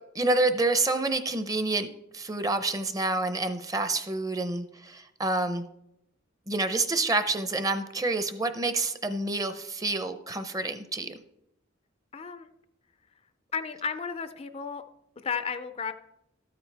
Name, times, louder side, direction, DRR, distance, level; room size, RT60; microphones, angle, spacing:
voice 1, 0.1-1.9 2.1-5.7 6.5-11.2, right 2 dB, 15° right, 10 dB, 0.6 m, -28 dB
voice 2, 12.1-12.5 13.5-14.8 15.2-15.9, left 6 dB, 30° left, 10 dB, 0.4 m, -33 dB
13.0 x 8.9 x 3.4 m, 0.82 s
head